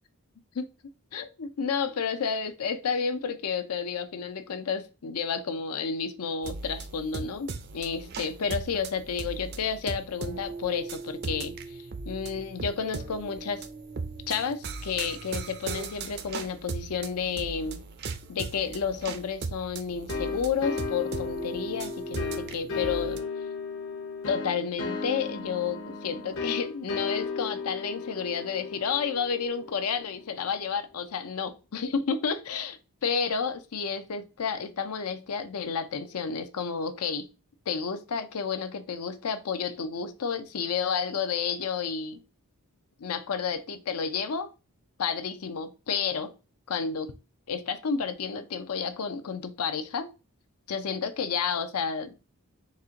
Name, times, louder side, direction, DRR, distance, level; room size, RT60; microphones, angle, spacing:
voice 1, 1.1-11.8 12.1-13.7 14.3-17.8 18.3-23.2 24.3-37.3 37.7-42.2 43.0-44.5 45.0-46.3 46.7-47.1 47.5-50.1 50.7-52.1, left 6 dB, 90° left, 0.5 m, -31 dB
sound 1, 6.4-23.2, right 4 dB, 45° right, 0.4 m, -38 dB
sound 2, 20.1-30.6, left 4 dB, 60° left, 0.8 m, -35 dB
4.2 x 2.5 x 3.6 m
head